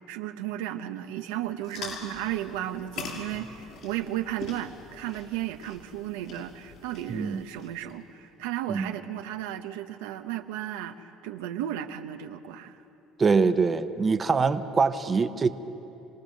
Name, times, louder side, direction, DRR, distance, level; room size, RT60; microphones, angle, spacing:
voice 1, 0.1-12.8, right 12 dB, 90° right, 7 dB, 0.9 m, -34 dB
sound 1, 1.6-7.9, left 4 dB, 70° left, 5.4 m, -43 dB
voice 2, 7.1-7.4 8.7-8.9 13.2-15.5, right 4 dB, 30° right, 10 dB, 0.9 m, -24 dB
27.0 x 18.0 x 6.6 m, 2.9 s
supercardioid pair, 95°, 0 cm